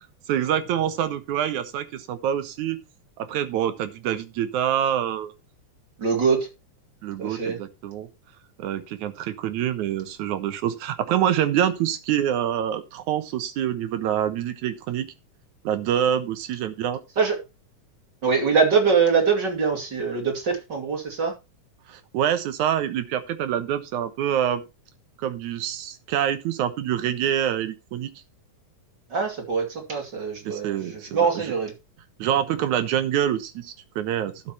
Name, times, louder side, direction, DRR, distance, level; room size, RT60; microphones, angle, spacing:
voice 1, 0.3-2.8 3.2-5.3 7.0-8.1 8.6-15.1 15.6-17.0 21.9-24.6 25.2-28.1 30.5-31.5 32.2-34.5, right 10 dB, 70° right, 2.4 m, -26 dB
voice 2, 6.0-6.5 7.2-7.6 17.2-17.4 18.2-21.3 29.1-31.7, right 5 dB, 35° right, 2.9 m, -23 dB
12.5 x 6.0 x 4.4 m
omnidirectional pair, 3.7 m